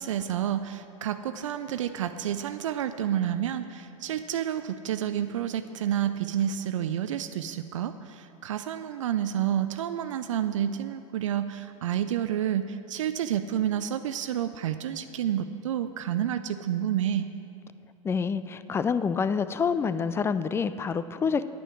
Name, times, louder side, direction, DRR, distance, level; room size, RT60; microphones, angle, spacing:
voice 1, 0.0-17.3, right 10 dB, 70° right, 10 dB, 0.4 m, -29 dB
voice 2, 18.0-21.5, left 6 dB, 15° left, 14 dB, 0.3 m, -27 dB
9.5 x 9.1 x 6.1 m, 2.6 s
figure-of-eight pair, 90°, 17 cm